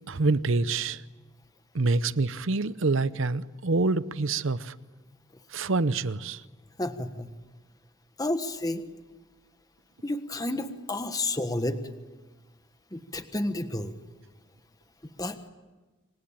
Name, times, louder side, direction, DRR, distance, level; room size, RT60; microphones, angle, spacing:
voice 1, 0.1-1.0 1.7-4.7 5.5-6.4, right 3 dB, 65° right, 0.8 m, -26 dB
voice 2, 6.8-7.3 8.2-8.8 10.0-11.8 12.9-13.9 15.2-15.4, left 1 dB, 15° left, 1.4 m, -30 dB
26.5 x 23.5 x 8.9 m
head